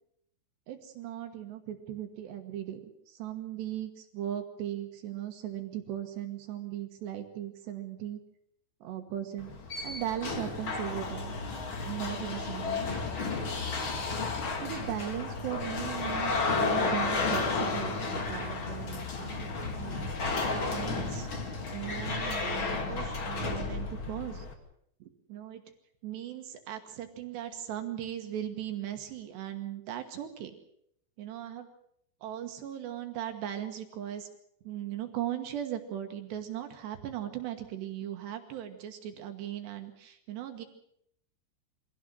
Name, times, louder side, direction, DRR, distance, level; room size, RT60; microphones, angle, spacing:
voice 1, 0.7-2.8 3.1-8.2 8.8-9.5 9.8-11.4 11.8-13.0 14.6-24.5 25.0-25.6 26.0-30.5 31.2-31.7 32.2-34.3 34.6-40.7, right 11 dB, 65° right, 6 dB, 3.3 m, -38 dB
sound 1, 9.4-24.5, left 3 dB, 45° left, 1.8 m, -32 dB
24.0 x 16.5 x 7.7 m, 0.71 s
omnidirectional pair, 5.8 m